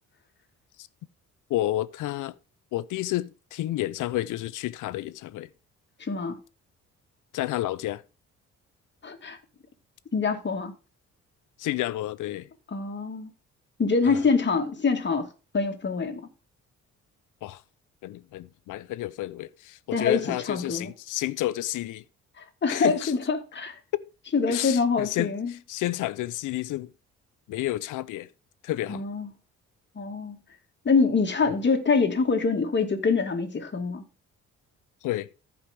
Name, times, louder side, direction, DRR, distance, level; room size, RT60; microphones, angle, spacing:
voice 1, 1.5-2.3 2.7-5.5 7.3-8.0 11.6-12.5 14.0-14.2 17.4-17.6 18.0-22.0 22.7-23.1 24.5-26.9 27.5-28.3 28.6-29.1 35.0-35.3, left 15 dB, 85° left, 0.7 m, -30 dB
voice 2, 6.0-6.4 9.0-9.4 10.1-10.7 12.7-13.3 13.8-15.3 15.5-16.3 19.9-20.2 20.5-20.9 22.4-23.8 24.3-25.5 28.9-29.3 30.0-30.4 30.8-34.0, left 4 dB, 35° left, 2.3 m, -25 dB
14.5 x 5.2 x 3.6 m
cardioid pair, 90°, 30 cm